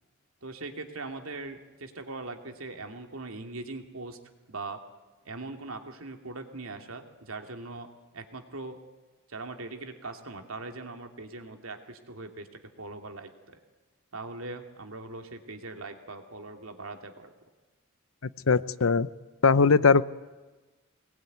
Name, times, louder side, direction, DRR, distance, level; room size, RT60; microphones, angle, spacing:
voice 1, 0.4-4.2 4.5-4.8 5.2-8.8 9.3-13.6 14.1-17.3, right 3 dB, 85° right, 5 dB, 2.6 m, -41 dB
voice 2, 18.5-19.1 19.4-20.0, left 4 dB, 80° left, 16 dB, 0.8 m, -20 dB
24.0 x 20.0 x 9.4 m, 1.2 s
head